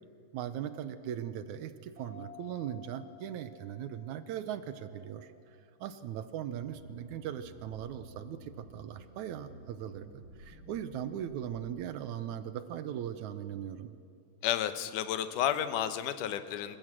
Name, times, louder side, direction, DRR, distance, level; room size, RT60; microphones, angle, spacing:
voice 1, 0.3-13.9, right 10 dB, 75° right, 11 dB, 1.8 m, -39 dB
sound 1, 2.0-5.3, left 8 dB, 60° right, 4.3 m, -54 dB
sound 2, 6.6-12.0, right 1 dB, 40° right, 4.1 m, -53 dB
voice 2, 14.4-16.8, left 11 dB, 75° left, 11 dB, 2.3 m, -31 dB
26.5 x 15.5 x 7.6 m, 2.4 s
omnidirectional pair, 4.0 m